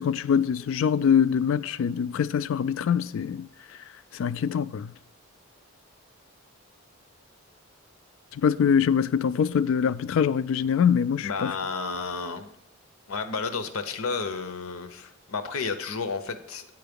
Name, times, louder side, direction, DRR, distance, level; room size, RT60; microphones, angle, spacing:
voice 1, 0.0-3.4 4.2-4.8 8.4-11.3, left 7 dB, 70° left, 0.3 m, -23 dB
voice 2, 11.2-12.5 13.1-16.6, left 4 dB, 90° left, 0.8 m, -32 dB
9.0 x 4.6 x 5.2 m
head